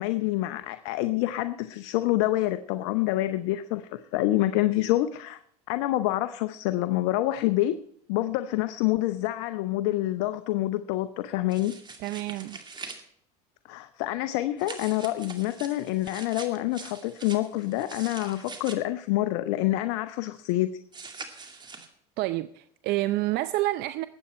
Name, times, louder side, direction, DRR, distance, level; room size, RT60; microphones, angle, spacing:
voice 1, 0.0-5.4 5.7-7.8 8.1-11.7 13.7-20.8, left 15 dB, 65° left, 0.7 m, -27 dB
sound 1, 11.5-13.0 14.6-18.8 20.9-21.9, right 4 dB, 25° right, 2.3 m, -43 dB
voice 2, 12.0-12.6 22.2-24.1, right 17 dB, 55° right, 0.6 m, -28 dB
20.5 x 8.6 x 4.3 m
hypercardioid pair, 85°, 20 cm